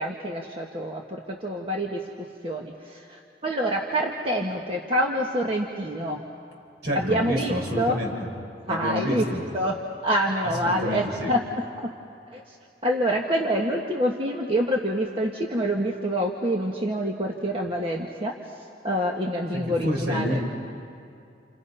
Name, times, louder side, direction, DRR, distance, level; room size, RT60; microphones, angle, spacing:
voice 1, 0.0-2.0 2.4-6.2 6.9-8.0 8.7-9.3 9.5-11.9 12.3-12.6 12.8-18.4 18.8-20.4, equal, 30° right, 0 dB, 1.4 m, -26 dB
voice 2, 6.8-8.1 8.6-9.4 10.4-11.3 19.5-20.4, equal, 65° right, -2 dB, 6.1 m, -28 dB
29.5 x 29.0 x 5.6 m, 2.5 s
head